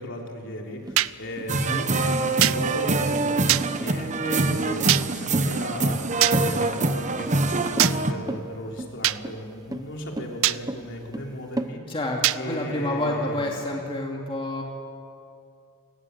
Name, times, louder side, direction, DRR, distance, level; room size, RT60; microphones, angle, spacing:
voice 1, 0.0-11.8 12.4-13.7, equal, 60° left, 1 dB, 3.5 m, -35 dB
sound 1, 0.9-11.7, right 1 dB, 15° right, 0.8 m, -36 dB
sound 2, 1.0-1.1 2.4-2.6 3.5-3.6 4.9-5.0 6.2-6.4 7.8-7.9 9.0-9.2 10.4-10.6 12.2-12.4, right 15 dB, 65° right, 0.5 m, -21 dB
voice 2, 1.5-1.9 11.9-14.6, left 1 dB, 25° left, -1 dB, 2.5 m, -29 dB
sound 3, 1.5-8.1, right 2 dB, 35° right, 1.1 m, -24 dB
28.0 x 19.0 x 8.1 m, 2.5 s
head